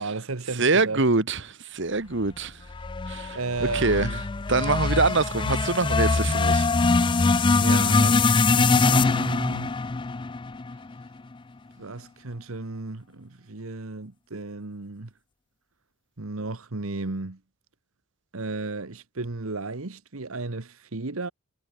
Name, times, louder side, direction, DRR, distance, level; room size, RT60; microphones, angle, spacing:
voice 1, 0.0-1.0 3.3-4.2 7.6-9.8 11.8-15.1 16.2-17.4 18.3-21.3, right 3 dB, 80° right, 1.3 m, -34 dB
voice 2, 0.6-2.6 3.1-3.4 3.7-4.1 4.5-6.7, right 3 dB, 60° right, 1.6 m, -24 dB
sound 1, 2.7-11.1, left 3 dB, 20° left, 0.4 m, -23 dB
head